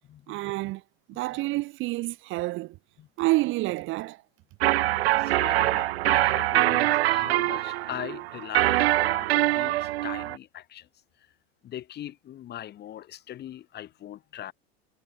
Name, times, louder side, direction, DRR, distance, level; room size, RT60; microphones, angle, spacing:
voice 1, 0.3-0.8 1.1-2.8 3.2-4.2 5.1-5.2, right 20 dB, 40° right, 0.6 m, -28 dB
sound 1, 4.6-10.4, right 16 dB, 75° right, 0.7 m, -24 dB
voice 2, 5.2-10.9 11.2-11.3 11.6-14.5, left 12 dB, 30° left, 1.3 m, -40 dB
hypercardioid pair, 100°, 32 cm